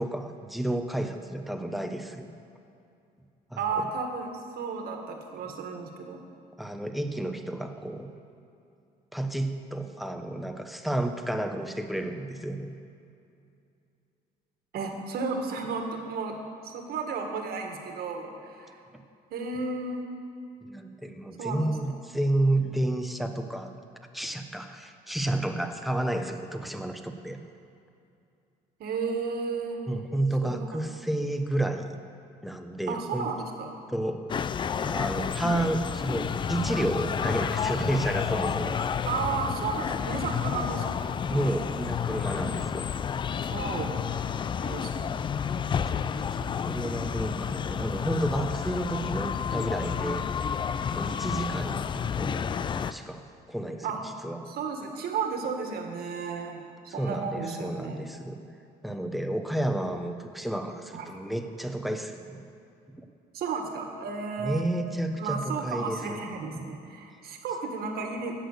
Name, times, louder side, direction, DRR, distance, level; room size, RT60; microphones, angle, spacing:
voice 1, 0.0-2.3 3.5-3.8 6.6-8.1 9.1-12.7 20.6-23.7 24.1-27.4 29.9-32.0 32.4-33.3 33.9-34.2 34.8-38.8 41.3-42.9 45.1-45.2 45.6-46.1 46.3-50.3 50.9-52.4 52.7-54.4 57.0-58.4 58.8-62.4 64.4-66.2 66.5-66.7, right 1 dB, ahead, 6 dB, 0.9 m, -31 dB
voice 2, 3.6-4.3 4.5-6.2 14.7-16.4 16.6-18.8 19.3-20.1 21.4-21.7 28.8-29.8 30.4-30.8 32.9-33.7 39.0-41.1 43.5-44.1 44.5-45.2 53.8-54.0 54.5-56.6 56.9-58.1 60.9-61.1 63.3-64.7 65.2-68.4, right 4 dB, 65° right, 3 dB, 1.8 m, -33 dB
sound 1, 34.3-52.9, left 7 dB, 30° left, 0.3 m, -30 dB
16.5 x 6.4 x 6.7 m, 2.5 s
cardioid pair, 110°, 17 cm